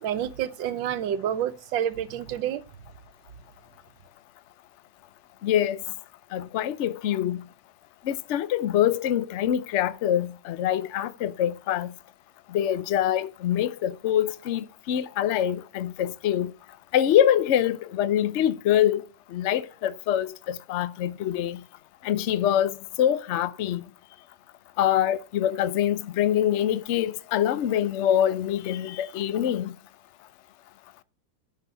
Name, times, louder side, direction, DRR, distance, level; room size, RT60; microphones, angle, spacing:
voice 1, 0.0-2.6, right 10 dB, 80° right, 1.5 m, -28 dB
voice 2, 5.4-5.8 6.3-7.5 8.0-11.9 12.5-16.5 16.9-19.0 19.3-21.6 22.0-23.8 24.8-29.7, left 11 dB, 75° left, 0.6 m, -25 dB
10.0 x 6.3 x 5.5 m
omnidirectional pair, 2.0 m